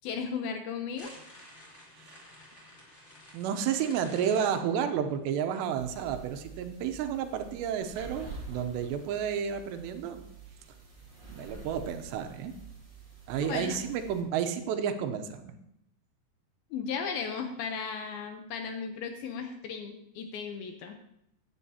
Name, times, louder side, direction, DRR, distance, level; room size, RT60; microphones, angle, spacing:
voice 1, 0.0-1.1 13.3-13.8 16.7-21.0, left 6 dB, 75° left, 5 dB, 2.4 m, -36 dB
sound 1, 1.0-5.1, left 1 dB, 20° left, 1.9 m, -51 dB
voice 2, 3.3-10.2 11.3-12.5 13.3-15.5, right 8 dB, 85° right, 7 dB, 3.0 m, -31 dB
sound 2, 5.8-14.2, right 4 dB, 25° right, 1.1 m, -47 dB
15.0 x 10.0 x 2.8 m, 0.76 s
omnidirectional pair, 4.9 m